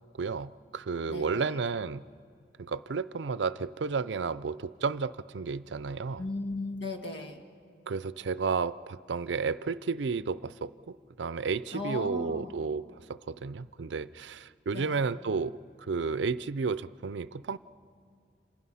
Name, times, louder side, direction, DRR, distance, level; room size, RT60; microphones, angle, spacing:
voice 1, 0.2-2.0 2.6-6.2 7.9-15.6 15.9-17.6, right 4 dB, 80° right, 16 dB, 0.5 m, -32 dB
voice 2, 1.1-1.6 6.2-7.4 11.7-12.6 14.7-15.0, left 2 dB, 70° left, 5 dB, 1.9 m, -36 dB
29.5 x 27.0 x 5.6 m, 2.2 s
head